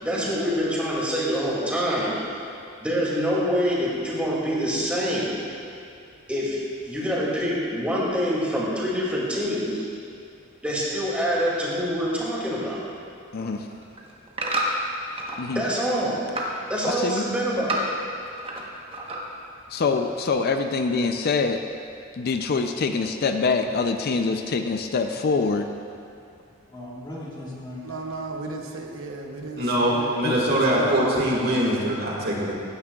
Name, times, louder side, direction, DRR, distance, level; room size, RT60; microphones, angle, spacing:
voice 1, 0.0-2.1 2.8-5.4 6.3-6.6 6.9-9.9 10.6-12.8 15.5-16.2 16.7-17.8, equal, 5° right, -7 dB, 2.3 m, -25 dB
voice 2, 13.3-13.7 15.4-15.6 16.8-17.3 19.7-21.6 22.2-25.7 30.2-30.4, left 4 dB, 50° left, 6 dB, 0.4 m, -24 dB
sound 1, 13.6-15.4 15.8-16.6 16.9-18.7 18.9-19.5 20.0-20.1, right 1 dB, 30° right, 1.0 m, -30 dB
voice 3, 15.3-15.7 24.3-24.5 26.7-28.0, left 1 dB, 20° left, -6 dB, 1.7 m, -40 dB
voice 4, 27.8-31.1, right 3 dB, 85° right, 2 dB, 0.8 m, -35 dB
voice 5, 29.6-32.5, right 1 dB, 50° right, -4 dB, 1.8 m, -22 dB
15.0 x 9.6 x 2.3 m, 2.4 s
head